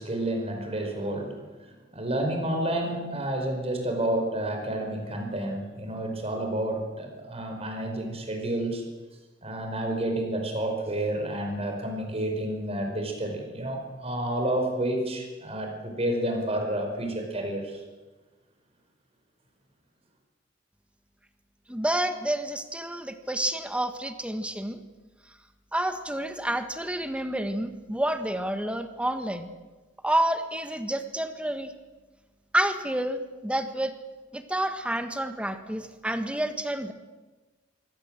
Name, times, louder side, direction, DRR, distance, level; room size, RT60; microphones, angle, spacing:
voice 1, 0.0-8.8 9.4-17.8, right 1 dB, 30° right, 3 dB, 4.9 m, -30 dB
voice 2, 21.7-24.8 25.7-29.5 30.0-31.7 32.5-33.9 34.3-36.9, right 1 dB, 5° right, 9 dB, 1.4 m, -29 dB
23.5 x 17.5 x 7.5 m, 1.2 s
head